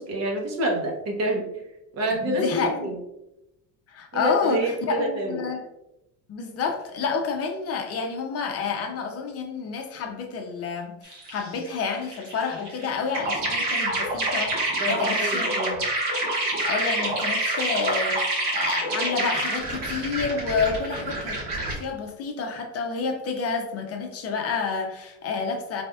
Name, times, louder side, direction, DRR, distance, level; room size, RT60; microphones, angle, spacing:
voice 1, 0.0-1.6 1.9-2.9 4.1-5.4 14.8-15.8, right 1 dB, 45° right, 1 dB, 1.0 m, -27 dB
voice 2, 2.1-2.9 3.9-5.6 6.3-15.6 16.6-21.4 21.7-25.8, left 5 dB, 40° left, 3 dB, 0.6 m, -29 dB
sound 1, 11.1-11.8 12.1-21.7, right 1 dB, 90° right, 1.4 m, -27 dB
3.8 x 3.4 x 2.3 m, 0.89 s
cardioid pair, 115°, 36 cm